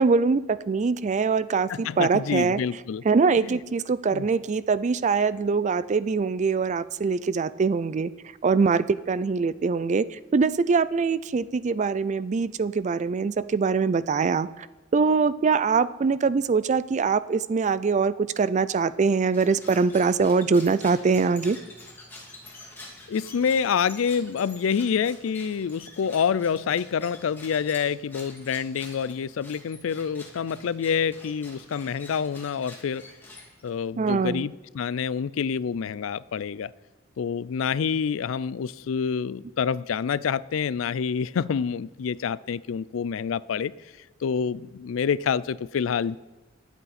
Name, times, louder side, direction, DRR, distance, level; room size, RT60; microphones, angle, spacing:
voice 1, 0.0-2.6 3.0-8.1 8.4-14.7 14.9-21.6 34.0-34.5, right 5 dB, 35° right, 16 dB, 0.4 m, -23 dB
voice 2, 1.7-3.0 3.5-3.6 4.1-4.3 23.1-33.0 33.6-36.7 37.2-43.7 44.2-46.2, left 6 dB, 80° left, 19 dB, 0.4 m, -27 dB
sound 1, 19.2-33.9, left 2 dB, 10° left, 2.5 m, -47 dB
23.0 x 8.1 x 4.2 m, 1.2 s
head